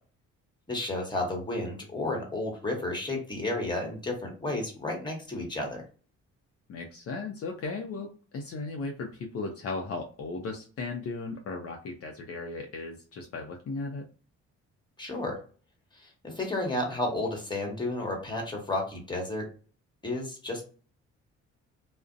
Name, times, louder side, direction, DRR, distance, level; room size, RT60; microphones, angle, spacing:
voice 1, 0.7-5.8 15.0-15.4 16.0-19.5 20.0-20.6, left 2 dB, 15° left, 1 dB, 1.1 m, -32 dB
voice 2, 6.7-14.0, left 3 dB, 50° left, 2 dB, 0.5 m, -36 dB
2.4 x 2.1 x 2.5 m, 0.38 s
cardioid pair, 90°, 30 cm